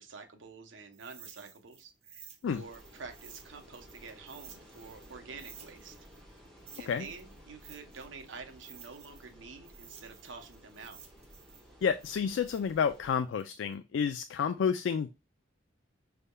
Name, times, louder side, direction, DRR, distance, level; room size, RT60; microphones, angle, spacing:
voice 1, 0.0-6.0 6.8-11.0, right 4 dB, 85° right, 0.8 m, -48 dB
sound 1, 0.9-5.1 5.4-9.3 9.6-13.7, right 7 dB, 35° right, 0.8 m, -54 dB
sound 2, 2.4-13.1, equal, 5° left, 1.4 m, -55 dB
voice 2, 11.8-15.2, left 6 dB, 80° left, 0.3 m, -30 dB
5.4 x 3.4 x 2.2 m
head